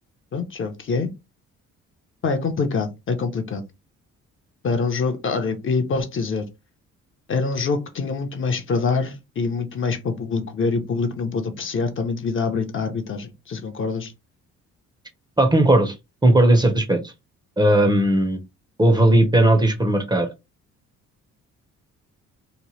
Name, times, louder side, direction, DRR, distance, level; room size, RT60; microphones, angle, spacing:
voice 1, 0.3-1.1 2.2-3.6 4.6-6.4 7.3-14.1, left 4 dB, 40° left, 0.6 m, -25 dB
voice 2, 15.4-15.9 16.2-17.1 17.6-18.4 18.8-20.3, right 1 dB, 15° right, 0.6 m, -17 dB
2.9 x 2.1 x 3.0 m
cardioid pair, 90°, 30 cm